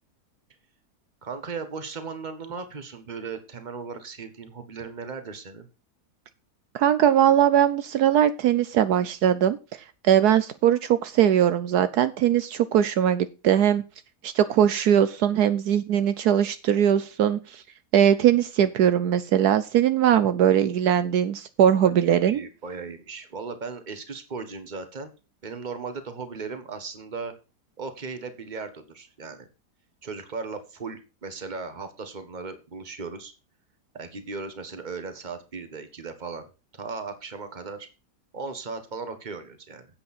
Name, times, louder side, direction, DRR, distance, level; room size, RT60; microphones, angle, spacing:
voice 1, 1.2-5.7 21.7-25.1 25.4-27.3 27.8-29.5 30.0-33.3 33.9-36.4 36.7-37.9 38.3-39.9, right 4 dB, 30° right, 9 dB, 1.5 m, -37 dB
voice 2, 6.7-9.6 10.0-13.8 14.2-17.6 17.9-22.4, right 10 dB, 75° right, 12 dB, 1.2 m, -20 dB
10.0 x 8.2 x 4.3 m, 0.31 s
omnidirectional pair, 1.7 m